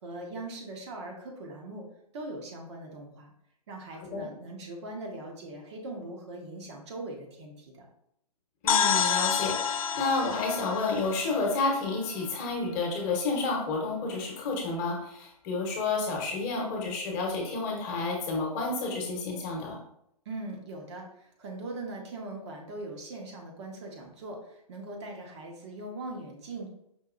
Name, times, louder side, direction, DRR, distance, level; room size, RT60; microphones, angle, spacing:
voice 1, 0.0-1.9 2.1-3.3 3.7-7.9 20.2-26.7, right 2 dB, 45° right, 0 dB, 1.0 m, -40 dB
voice 2, 8.6-9.6 9.9-19.8, left 3 dB, 30° left, 0 dB, 1.0 m, -30 dB
sound 1, 8.7-12.3, left 7 dB, 65° left, 0.4 m, -29 dB
5.3 x 2.7 x 2.5 m, 0.74 s
hypercardioid pair, 135°, 20 cm